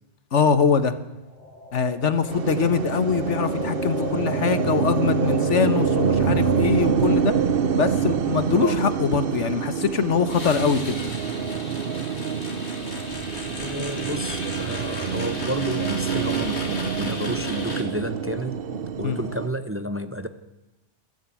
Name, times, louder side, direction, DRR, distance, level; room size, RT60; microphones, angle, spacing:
voice 1, 0.3-0.9 1.7-7.3 7.8-11.0 19.0-19.2, left 6 dB, 85° left, 11 dB, 1.6 m, -23 dB
sound 1, 1.2-9.3, left 2 dB, 40° left, 3.6 m, -38 dB
sound 2, 2.3-19.5, right 6 dB, 55° right, 1.0 m, -26 dB
sound 3, 10.3-17.8, left 2 dB, 65° left, 3.0 m, -35 dB
voice 2, 13.6-18.6 19.0-20.3, equal, 15° right, 10 dB, 0.9 m, -31 dB
22.0 x 13.5 x 8.5 m, 1.0 s
omnidirectional pair, 1.2 m